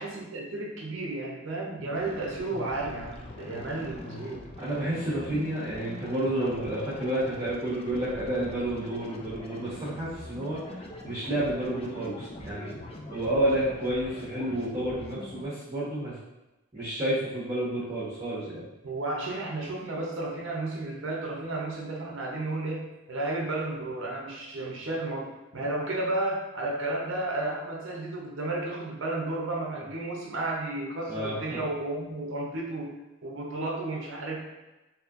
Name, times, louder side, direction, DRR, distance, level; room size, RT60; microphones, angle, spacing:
voice 1, 0.0-4.4 18.8-32.9 33.2-34.5, right 2 dB, 60° right, -1 dB, 0.7 m, -33 dB
sound 1, 1.9-15.4, left 2 dB, 30° left, 0.3 m, -43 dB
voice 2, 4.6-10.6 11.0-12.7 13.1-16.2 16.7-18.6 31.1-31.6, right 1 dB, 25° right, -12 dB, 1.1 m, -30 dB
4.2 x 2.8 x 2.5 m, 1.0 s
head